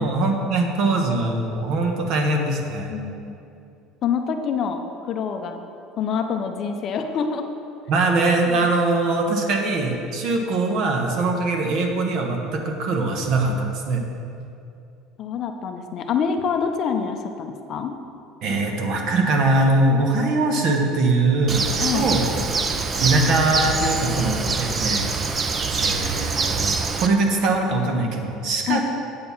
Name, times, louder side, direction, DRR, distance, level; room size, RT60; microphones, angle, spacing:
voice 1, 0.0-2.9 7.9-14.0 18.4-22.3 22.7-25.1 25.8-28.8, right 2 dB, 50° right, 3 dB, 1.0 m, -22 dB
voice 2, 2.9-3.4 4.0-5.6 6.0-7.5 8.5-8.6 9.5-9.7 13.5-13.7 15.2-17.9 21.8-22.1 28.7-28.8, left 6 dB, 35° left, 5 dB, 0.5 m, -26 dB
Bird, 21.5-27.1, right 4 dB, 25° right, 0.4 m, -25 dB
8.5 x 4.5 x 7.0 m, 2.7 s
cardioid pair, 155°, 0 cm